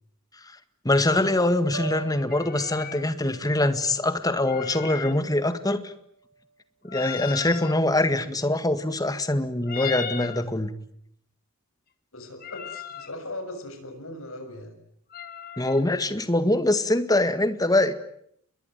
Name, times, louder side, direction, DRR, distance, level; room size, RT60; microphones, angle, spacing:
voice 1, 0.9-5.9 6.8-10.7 15.6-17.9, left 1 dB, 15° left, 11 dB, 1.9 m, -23 dB
Piano, 1.7-5.7 6.1-6.5, right 4 dB, 70° right, 6.3 m, -42 dB
sound 1, 2.3-3.0 4.3-5.2 6.9-7.8 9.6-10.5 12.4-13.1 15.1-15.8, left 8 dB, 45° left, 1.7 m, -36 dB
voice 2, 12.1-14.8, left 1 dB, 75° left, 6 dB, 7.1 m, -38 dB
29.5 x 21.5 x 9.3 m, 0.70 s
head